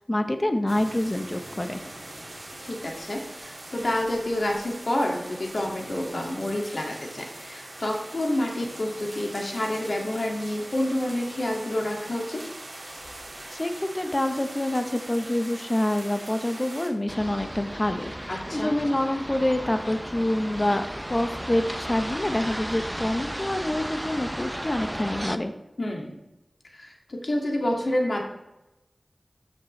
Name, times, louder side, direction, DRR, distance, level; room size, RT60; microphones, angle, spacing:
voice 1, 0.1-1.8 13.5-20.8 21.1-25.5, left 1 dB, 30° left, 7 dB, 1.0 m, -26 dB
sound 1, 0.7-16.9, right 1 dB, 50° right, 2.3 m, -42 dB
voice 2, 2.6-12.4 18.3-18.7 25.8-26.2 26.7-28.2, left 1 dB, 65° left, 0 dB, 2.2 m, -28 dB
sound 2, 17.1-25.4, equal, 10° right, 0.6 m, -34 dB
13.5 x 7.7 x 3.3 m, 0.95 s
wide cardioid pair, 60°, 0 cm